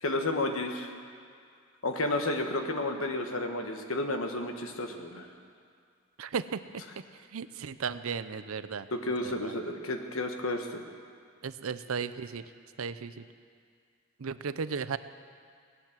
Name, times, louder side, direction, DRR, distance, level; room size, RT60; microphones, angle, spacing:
voice 1, 0.0-0.9 1.8-5.3 8.9-10.8, left 2 dB, 80° left, 5 dB, 1.5 m, -31 dB
voice 2, 6.2-8.9 9.2-9.6 11.4-12.5 12.8-13.2 14.2-15.0, right 6 dB, 90° right, 13 dB, 0.6 m, -35 dB
18.0 x 9.6 x 7.4 m, 2.2 s
head